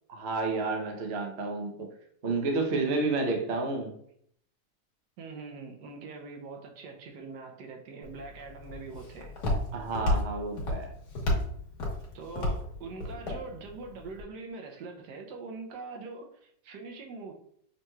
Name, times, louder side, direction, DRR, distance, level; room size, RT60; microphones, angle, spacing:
voice 1, 0.1-1.9 2.2-3.9 9.7-10.9, right 3 dB, 50° right, 2 dB, 0.8 m, -30 dB
voice 2, 5.2-9.3 12.1-17.3, right 4 dB, 75° right, 3 dB, 1.2 m, -43 dB
Walk footsteps, 8.0-14.2, left 1 dB, 65° left, 1.5 m, -32 dB
5.4 x 2.9 x 2.3 m, 0.66 s
omnidirectional pair, 1.9 m